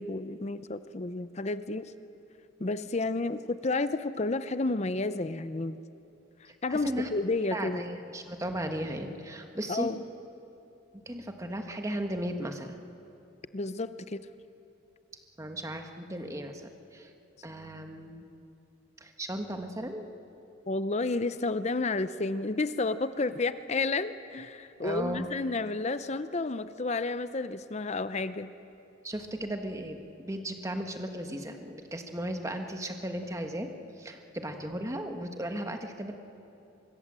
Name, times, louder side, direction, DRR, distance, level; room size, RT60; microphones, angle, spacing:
voice 1, 0.0-1.9 2.6-5.8 6.6-7.8 9.7-10.0 13.5-14.2 20.7-28.5, left 3 dB, 35° left, 12 dB, 0.6 m, -31 dB
voice 2, 6.7-7.1 7.5-9.9 10.9-12.8 15.4-17.1 17.4-18.3 19.0-20.0 24.8-25.3 29.0-33.7 34.0-36.1, right 1 dB, 15° right, 5 dB, 1.5 m, -36 dB
25.0 x 22.5 x 7.5 m, 2.8 s
head